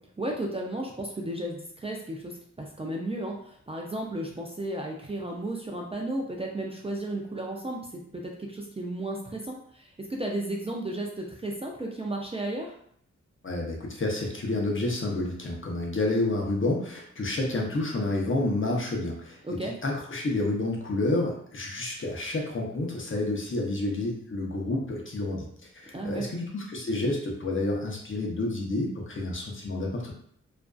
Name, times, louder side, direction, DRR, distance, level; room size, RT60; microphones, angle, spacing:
voice 1, 0.2-7.8 8.1-12.7 19.4-19.7 25.9-26.3, right 1 dB, 20° right, -1 dB, 0.4 m, -34 dB
voice 2, 13.4-19.4 19.8-25.5 25.7-30.1, left 2 dB, 45° left, -1 dB, 0.6 m, -29 dB
2.4 x 2.3 x 2.2 m, 0.64 s
wide cardioid pair, 75°, 29 cm